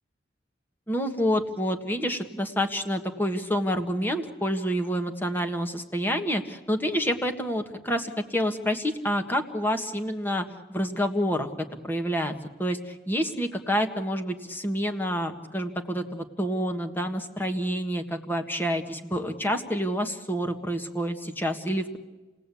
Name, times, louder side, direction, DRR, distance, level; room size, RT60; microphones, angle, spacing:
voice 1, 0.9-12.3 12.6-22.0, equal, 10° left, 5 dB, 1.6 m, -28 dB
29.5 x 18.5 x 8.5 m, 1.2 s
head